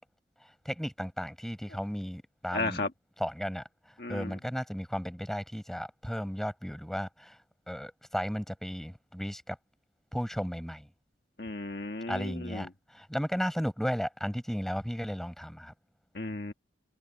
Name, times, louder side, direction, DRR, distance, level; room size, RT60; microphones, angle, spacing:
voice 1, 0.4-2.8 3.2-7.4 7.7-9.6 10.1-10.9 12.1-15.7, equal, ahead, 6.4 m, -35 dB
voice 2, 2.5-2.9 4.0-4.3 11.4-12.7 16.1-16.5, left 2 dB, 60° left, 1.5 m, -34 dB
head